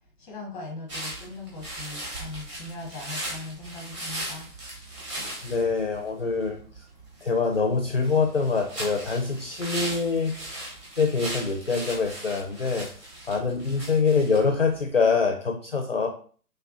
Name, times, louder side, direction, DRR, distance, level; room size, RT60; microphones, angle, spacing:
voice 1, 0.2-4.5, left 2 dB, 5° left, -2 dB, 0.7 m, -39 dB
sound 1, 0.9-15.1, right 1 dB, 20° right, 1.1 m, -38 dB
voice 2, 5.4-6.8 7.2-10.7 11.0-12.9 13.3-16.1, left 4 dB, 40° left, 4 dB, 0.4 m, -25 dB
5.3 x 3.3 x 2.3 m, 0.43 s
figure-of-eight pair, 145°, 48 cm